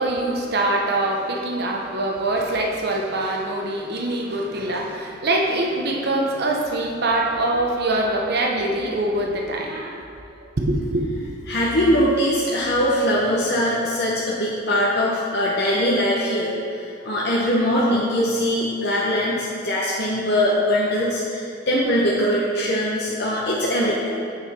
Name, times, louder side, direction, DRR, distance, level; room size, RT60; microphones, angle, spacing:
voice 1, 0.0-11.1, right 2 dB, 55° right, 0 dB, 0.9 m, -24 dB
voice 2, 11.5-24.1, equal, 60° left, -5 dB, 0.9 m, -21 dB
8.7 x 5.6 x 4.3 m, 2.4 s
head